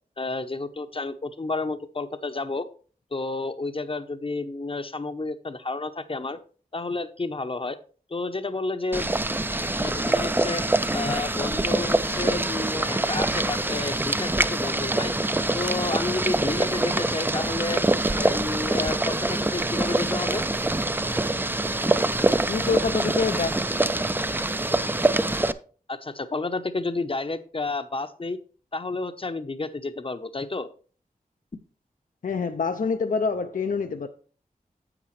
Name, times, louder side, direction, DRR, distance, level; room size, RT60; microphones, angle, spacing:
voice 1, 0.2-2.7 3.1-6.4 6.7-7.8 8.1-9.1 9.8-10.6 10.9-15.1 15.5-17.8 18.1-20.4 25.9-28.4 28.7-30.7, left 3 dB, 40° left, 0.7 m, -31 dB
Boiling, 8.9-25.5, right 2 dB, 15° right, 0.4 m, -25 dB
voice 2, 22.5-23.5 32.2-34.1, left 5 dB, 65° left, 0.5 m, -26 dB
9.8 x 7.9 x 3.2 m
wide cardioid pair, 65°, 15 cm